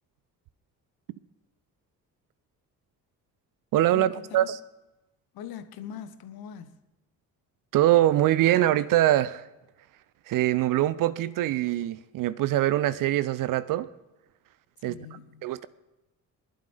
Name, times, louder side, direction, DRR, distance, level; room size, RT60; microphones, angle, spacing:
voice 1, 3.7-4.6 7.7-9.5 10.3-13.9 14.8-15.0 15.4-15.7, right 14 dB, 45° right, 0.6 m, -23 dB
voice 2, 5.3-6.8 14.8-15.5, left 8 dB, 50° left, 1.2 m, -41 dB
24.0 x 11.5 x 3.5 m
figure-of-eight pair, 45°, 47 cm